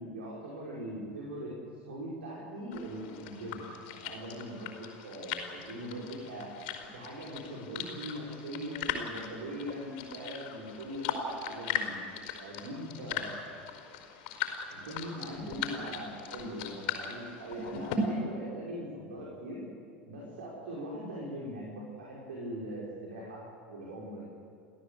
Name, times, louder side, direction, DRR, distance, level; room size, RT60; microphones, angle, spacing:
voice 1, 0.0-1.5 1.8-6.5 6.9-12.0 12.4-13.4 14.7-19.6 20.1-24.3, equal, 70° right, -4 dB, 5.5 m, -41 dB
sound 1, 2.7-18.0, left 8 dB, 55° left, 5.0 m, -39 dB
30.0 x 17.0 x 8.4 m, 2.3 s
figure-of-eight pair, 75°, 6 cm